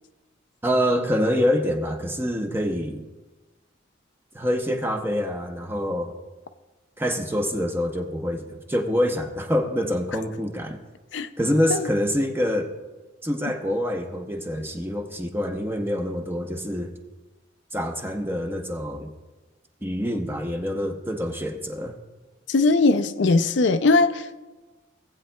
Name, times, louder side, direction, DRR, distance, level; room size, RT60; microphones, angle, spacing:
voice 1, 0.6-3.0 4.3-6.1 7.0-10.8 11.4-12.7 13.2-16.9 17.7-19.1 19.8-22.0, equal, 10° right, 3 dB, 0.7 m, -26 dB
voice 2, 22.5-24.4, left 3 dB, 65° left, 10 dB, 0.4 m, -20 dB
18.0 x 8.7 x 2.2 m, 1.2 s
head